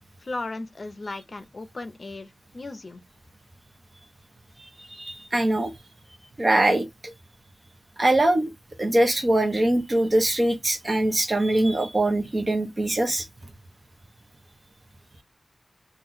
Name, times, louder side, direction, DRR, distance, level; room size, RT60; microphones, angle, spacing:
voice 1, 0.2-3.0, left 2 dB, 50° left, 0.6 m, -36 dB
voice 2, 4.8-5.8 6.4-7.1 8.0-8.5 8.8-13.3, right 1 dB, 40° right, 1.0 m, -22 dB
2.8 x 2.6 x 4.0 m
wide cardioid pair, 90°, 0 cm